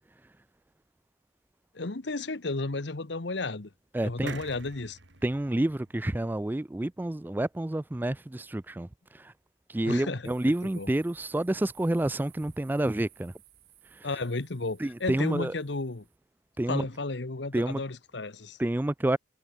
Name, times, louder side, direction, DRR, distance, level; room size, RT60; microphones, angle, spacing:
voice 1, 1.7-3.7 4.0-5.0 9.8-10.2 10.7-10.9 14.0-16.0 16.7-18.6, left 3 dB, 70° left, 1.2 m, -33 dB
voice 2, 3.9-4.4 5.2-9.3 9.7-13.3 13.8-14.1 14.8-15.5 16.6-16.9 17.5-17.8 18.6-19.2, right 1 dB, 10° right, 0.3 m, -29 dB
sound 1, 4.3-7.7 8.1-8.2 8.4-8.5, right 5 dB, 75° right, 4.8 m, -49 dB
sound 2, 10.2-16.2, right 12 dB, 60° right, 4.1 m, -58 dB
head